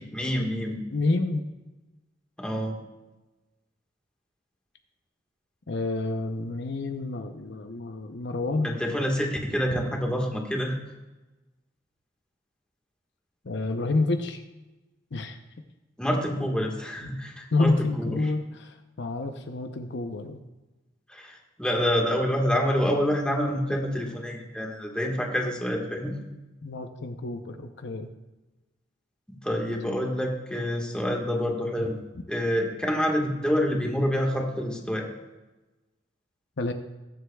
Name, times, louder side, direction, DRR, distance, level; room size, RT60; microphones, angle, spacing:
voice 1, 0.0-0.8 2.4-2.8 8.6-10.8 16.0-18.1 21.1-26.2 29.3-32.0 32.3-35.1, equal, 5° left, 0 dB, 1.5 m, -27 dB
voice 2, 0.9-1.4 5.7-8.8 9.7-9.8 13.4-14.4 15.1-15.4 17.0-17.1 17.5-20.4 26.6-28.1 36.6-36.7, left 2 dB, 65° left, 6 dB, 0.7 m, -29 dB
20.5 x 7.9 x 2.3 m, 1.1 s
head